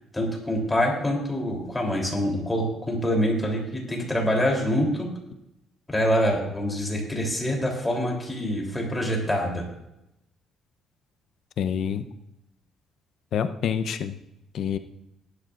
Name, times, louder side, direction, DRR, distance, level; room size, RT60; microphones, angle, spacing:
voice 1, 0.1-5.1 5.9-9.6, equal, 10° left, -1 dB, 3.3 m, -25 dB
voice 2, 11.6-12.0 13.3-14.1 14.5-14.8, left 8 dB, 60° left, 10 dB, 0.7 m, -27 dB
17.5 x 11.5 x 2.5 m, 0.86 s
cardioid pair, 135°, 0 cm